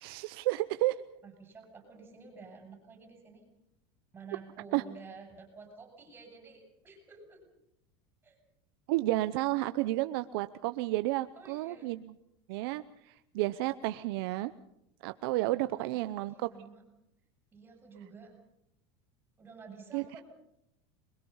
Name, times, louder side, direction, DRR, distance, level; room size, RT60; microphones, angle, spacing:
voice 1, 0.0-1.0 4.7-4.8 8.9-12.1 12.5-14.5 15.0-16.5 19.9-20.0, right 18 dB, 60° right, 11 dB, 0.7 m, -31 dB
voice 2, 1.2-3.4 4.1-7.4 8.2-8.4 11.3-11.9 15.4-16.8 17.5-18.4 19.4-20.2, right 4 dB, 15° right, 3 dB, 6.9 m, -51 dB
27.0 x 21.5 x 5.6 m, 0.79 s
supercardioid pair, 165°, 14 cm